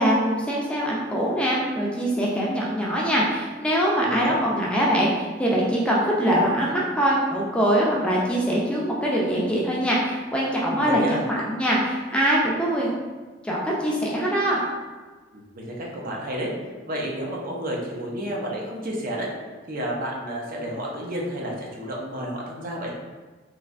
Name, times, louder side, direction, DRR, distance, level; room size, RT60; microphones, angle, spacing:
voice 1, 0.0-13.0 13.4-14.6, equal, 5° left, -4 dB, 0.4 m, -23 dB
voice 2, 4.0-4.4 10.7-11.2 15.3-16.5 16.9-19.3 19.7-22.9, right 1 dB, 50° right, -2 dB, 0.5 m, -31 dB
3.1 x 2.5 x 2.4 m, 1.3 s
head